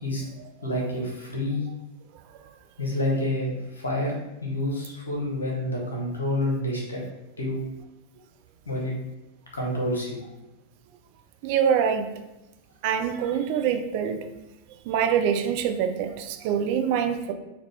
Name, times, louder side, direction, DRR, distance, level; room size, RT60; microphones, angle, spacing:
voice 1, 0.6-1.7 2.8-4.1 4.4-7.0 7.4-7.6 8.7-8.9 9.5-10.2, left 1 dB, 75° left, -1 dB, 0.9 m, -28 dB
voice 2, 11.4-12.1 12.8-14.2 14.9-17.3, right 8 dB, 45° right, 7 dB, 0.3 m, -24 dB
3.5 x 2.3 x 3.3 m, 0.98 s
figure-of-eight pair, 90°, 0 cm